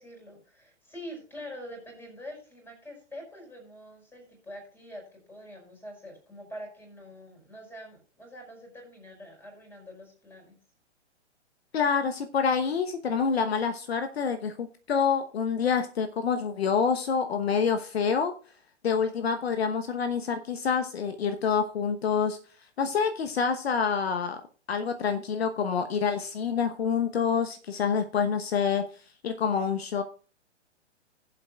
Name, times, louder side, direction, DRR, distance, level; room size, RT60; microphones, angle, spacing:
voice 1, 0.0-10.6, equal, 5° left, 0 dB, 5.1 m, -45 dB
voice 2, 11.7-18.3 18.8-22.4 22.8-24.4 24.7-28.8 29.2-30.0, left 6 dB, 60° left, 8 dB, 1.1 m, -27 dB
19.5 x 7.7 x 2.3 m, 0.40 s
figure-of-eight pair, 120°, 35 cm